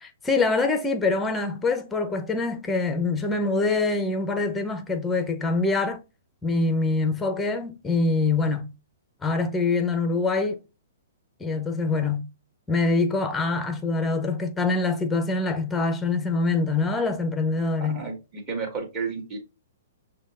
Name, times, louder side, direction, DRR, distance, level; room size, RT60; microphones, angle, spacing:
voice 1, 0.0-6.0 6.4-8.7 9.2-10.6 11.4-12.3 12.7-18.0, left 3 dB, 10° left, 0.7 m, -24 dB
voice 2, 17.8-19.4, right 5 dB, 25° right, 2.0 m, -32 dB
6.2 x 2.3 x 3.6 m
hypercardioid pair, 145°, 0 cm